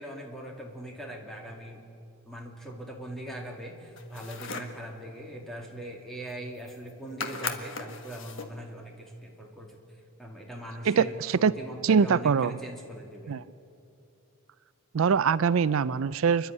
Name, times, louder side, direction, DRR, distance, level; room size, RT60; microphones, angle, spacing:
voice 1, 0.0-1.8 2.2-9.8 10.2-13.4, right 1 dB, ahead, 0 dB, 2.6 m, -41 dB
sound 1, 4.0-4.8 6.3-6.4 6.6-6.9 7.2-8.6, left 5 dB, 60° left, 1.6 m, -37 dB
voice 2, 10.8-11.6 11.8-12.6 13.3-13.4 14.9-16.5, right 6 dB, 75° right, 17 dB, 0.4 m, -23 dB
29.0 x 11.0 x 9.6 m, 2.5 s
head